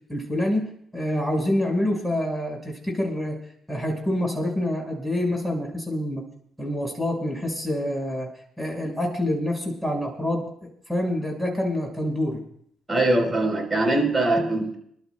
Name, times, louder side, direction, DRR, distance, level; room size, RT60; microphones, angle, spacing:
voice 1, 0.1-0.6 0.9-3.4 3.7-6.2 6.6-8.3 8.6-12.4, left 1 dB, 5° right, 1 dB, 5.1 m, -26 dB
voice 2, 12.9-14.8, right 2 dB, 25° right, 3 dB, 3.9 m, -22 dB
26.5 x 12.0 x 2.3 m, 0.68 s
hypercardioid pair, 50°, 0 cm